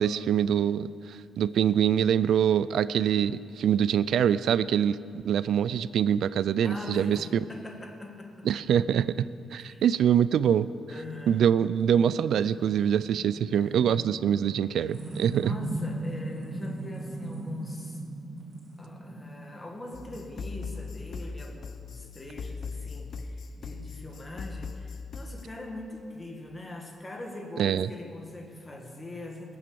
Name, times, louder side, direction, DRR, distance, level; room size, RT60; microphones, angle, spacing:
voice 1, 0.0-7.3 8.4-10.7 11.3-15.6 27.6-27.9, right 9 dB, 70° right, 16 dB, 0.3 m, -24 dB
voice 2, 6.6-8.5 9.6-9.8 10.9-11.5 13.5-14.0 15.4-18.0 18.8-29.6, left 2 dB, 15° left, 2 dB, 1.8 m, -42 dB
sound 1, 11.2-21.2, right 1 dB, 35° right, 4.2 m, -39 dB
sound 2, 19.9-25.4, left 4 dB, 45° left, 0.8 m, -39 dB
20.5 x 7.6 x 7.0 m, 2.4 s
cardioid pair, 150°, 0 cm